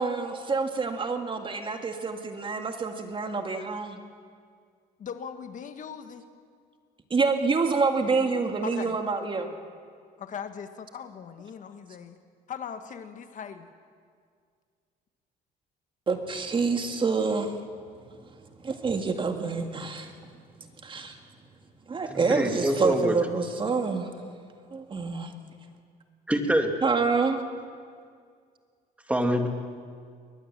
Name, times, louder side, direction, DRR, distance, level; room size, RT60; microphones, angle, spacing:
voice 1, 0.0-4.0 7.1-9.6 16.1-17.5 18.6-20.1 20.8-21.2 21.9-24.1 24.7-25.3 26.8-27.4, right 4 dB, 30° right, 5 dB, 2.0 m, -27 dB
voice 2, 5.0-6.2 8.6-9.0 10.2-12.2 12.5-13.7, left 7 dB, 50° left, 9 dB, 1.3 m, -39 dB
voice 3, 22.1-23.1 26.3-26.7 29.1-29.5, right 1 dB, 10° right, 5 dB, 2.1 m, -25 dB
22.0 x 19.5 x 7.5 m, 2.1 s
cardioid pair, 110°, 17 cm